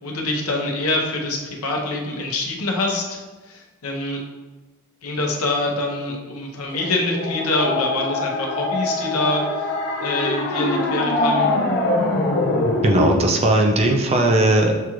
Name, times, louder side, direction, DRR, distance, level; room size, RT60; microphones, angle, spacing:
voice 1, 0.0-3.2 3.5-4.2 5.0-9.7 10.0-11.5, left 2 dB, 80° left, 0 dB, 0.8 m, -25 dB
sound 1, 6.7-13.2, left 2 dB, 50° left, 0.6 m, -23 dB
voice 2, 12.8-14.9, right 1 dB, 30° right, 2 dB, 0.4 m, -18 dB
6.6 x 2.4 x 3.0 m, 1.2 s
head